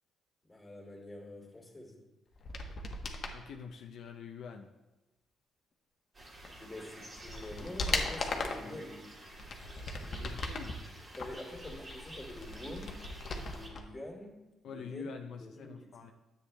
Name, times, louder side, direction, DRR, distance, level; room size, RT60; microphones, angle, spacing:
voice 1, 0.5-2.0 6.6-9.0 11.2-13.0 13.4-14.4 14.6-15.1 15.4-15.9, left 1 dB, 15° left, 0 dB, 2.4 m, -46 dB
sound 1, 2.4-3.4 6.4-6.5 7.0-8.7 9.3-10.7 11.1-13.8 14.1-14.2, left 3 dB, 50° left, 0.9 m, -38 dB
voice 2, 3.3-4.7 8.6-8.8 9.5-9.6 10.0-10.8 14.6-16.1, left 6 dB, 70° left, 3 dB, 0.5 m, -45 dB
sound 2, 6.1-13.7, right 1 dB, 35° right, 2.0 m, -51 dB
10.0 x 8.0 x 2.2 m, 1.0 s
cardioid pair, 90°, 0 cm